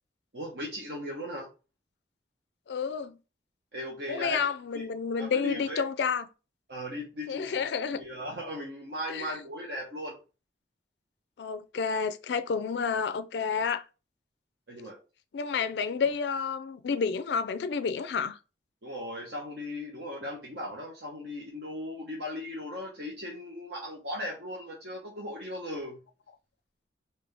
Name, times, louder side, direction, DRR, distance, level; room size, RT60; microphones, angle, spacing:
voice 1, 0.3-1.5 3.7-4.4 4.7-4.9 5.2-5.8 6.7-7.7 7.9-10.2 14.7-15.0 18.8-26.0, left 1 dB, 65° right, 1.0 m, -37 dB
voice 2, 2.7-3.2 4.1-6.3 7.3-8.0 9.1-9.3 11.4-13.8 15.3-18.4, left 5 dB, 70° left, 0.4 m, -30 dB
3.7 x 2.7 x 3.4 m
head